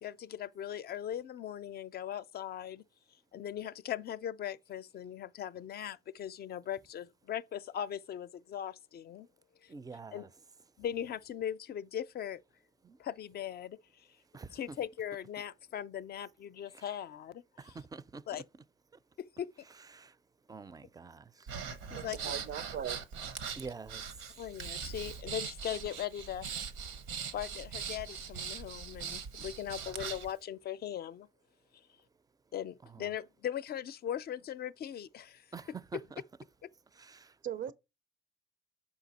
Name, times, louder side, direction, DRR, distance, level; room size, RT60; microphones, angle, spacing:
voice 1, 0.0-2.8 3.3-9.3 9.6-9.7 10.1-10.3 10.8-12.4 13.0-14.1 14.5-17.8 18.3-18.4 19.2-19.5 21.9-22.3 24.4-26.5 27.3-31.3 32.5-35.5 35.9-36.0, left 10 dB, 55° left, 0.4 m, -39 dB
voice 2, 9.7-10.3 12.8-13.0 14.3-14.6 16.7-16.8 17.6-18.2 19.9-20.1 20.5-21.5 23.6-24.0 32.9-33.1 35.5-36.0 37.0-37.3, right 4 dB, 20° right, 0.4 m, -46 dB
Breathing, 21.5-30.3, right 6 dB, 90° right, 0.9 m, -41 dB
voice 3, 21.9-23.0 37.4-37.7, right 9 dB, 70° right, 0.5 m, -39 dB
5.7 x 4.8 x 4.0 m
cardioid pair, 90°, 20 cm